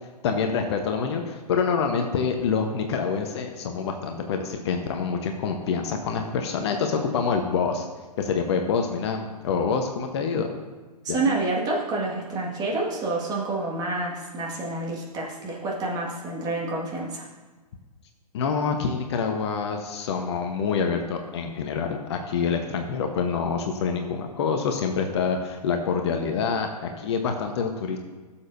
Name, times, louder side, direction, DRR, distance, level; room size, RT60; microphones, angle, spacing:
voice 1, 0.2-7.8 8.2-10.5 11.1-11.2 18.3-28.0, left 5 dB, 40° left, 4 dB, 0.9 m, -26 dB
voice 2, 11.0-17.3, right 2 dB, 20° right, -2 dB, 1.8 m, -28 dB
16.0 x 7.2 x 2.6 m, 1.3 s
figure-of-eight pair, 125°, 21 cm